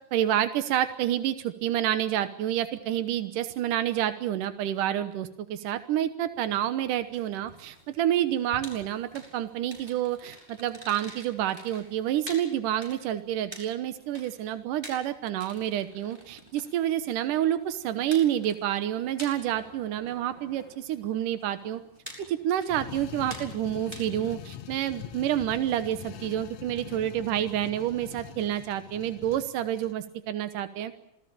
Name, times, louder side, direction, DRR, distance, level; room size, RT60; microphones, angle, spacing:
voice 1, 0.1-21.8 22.3-30.9, right 11 dB, 85° right, 11 dB, 2.7 m, -28 dB
sound 1, 6.3-24.4, equal, 5° right, 7.4 m, -49 dB
sound 2, 22.6-30.0, left 10 dB, 70° left, 2.4 m, -43 dB
27.0 x 18.0 x 8.7 m, 0.81 s
omnidirectional pair, 3.6 m